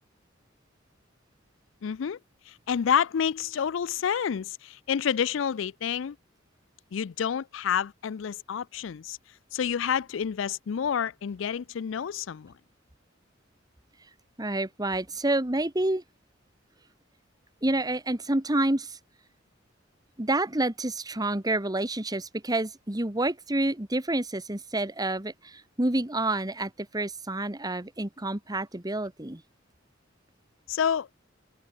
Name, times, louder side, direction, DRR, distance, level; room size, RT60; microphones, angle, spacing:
voice 1, 1.8-2.2 2.5-6.2 6.9-9.2 9.5-12.5 30.7-31.1, left 8 dB, 75° left, 0.4 m, -29 dB
voice 2, 14.4-16.0 17.6-19.0 20.2-29.4, right 2 dB, 20° right, 1.6 m, -28 dB
head